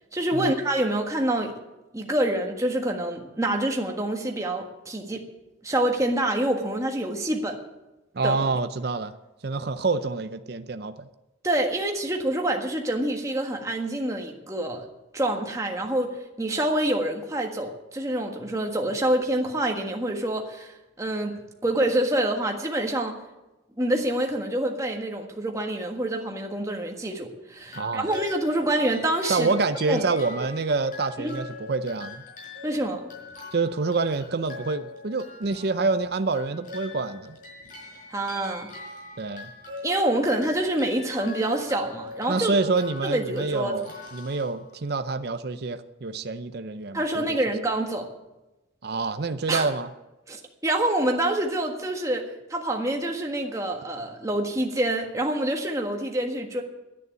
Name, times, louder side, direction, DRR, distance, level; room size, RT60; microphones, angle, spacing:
voice 1, 0.1-1.5 1.9-5.2 5.6-7.6 8.2-8.4 11.4-14.9 15.1-23.2 23.8-29.5 29.9-30.0 31.2-31.4 32.6-33.1 38.1-38.7 39.8-42.6 43.0-43.8 46.9-48.1 49.5-49.7 50.3-56.6, right 1 dB, 15° right, 2 dB, 1.5 m, -26 dB
voice 2, 8.1-9.1 9.4-11.1 27.8-28.1 29.3-32.2 33.5-37.4 39.2-39.5 42.3-47.4 48.8-49.9, right 3 dB, 55° right, 9 dB, 0.6 m, -27 dB
sound 1, 27.7-45.1, left 3 dB, 45° left, 5.3 m, -43 dB
11.0 x 9.6 x 9.3 m, 1.0 s
head